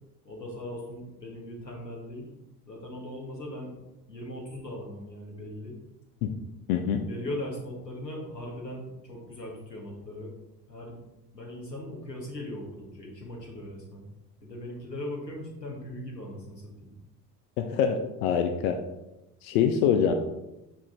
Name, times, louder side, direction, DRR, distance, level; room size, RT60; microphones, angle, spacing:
voice 1, 0.2-2.3 2.7-3.8 4.1-5.8 7.1-10.3 10.7-11.0 11.3-14.1 14.4-17.0, left 1 dB, 90° left, -3 dB, 1.6 m, -39 dB
voice 2, 6.7-7.0 17.6-18.8 19.4-20.1, left 8 dB, 60° left, 6 dB, 0.7 m, -25 dB
7.2 x 4.8 x 3.8 m, 0.97 s
figure-of-eight pair, 60°, 48 cm